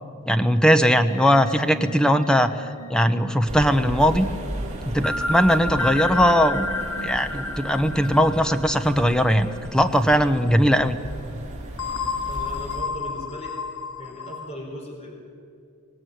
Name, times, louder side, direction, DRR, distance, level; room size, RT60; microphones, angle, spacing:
voice 1, 0.3-4.3 4.9-6.7 7.0-11.0, equal, 5° left, 9 dB, 1.0 m, -20 dB
sound 1, 1.1-10.0 10.3-10.5 11.8-14.5, left 3 dB, 75° left, 1.2 m, -32 dB
sound 2, 3.5-12.8, right 1 dB, 30° right, 4.1 m, -35 dB
voice 2, 12.3-13.6 14.0-15.1, equal, 30° left, 1 dB, 4.2 m, -37 dB
25.0 x 18.0 x 9.5 m, 2.4 s
head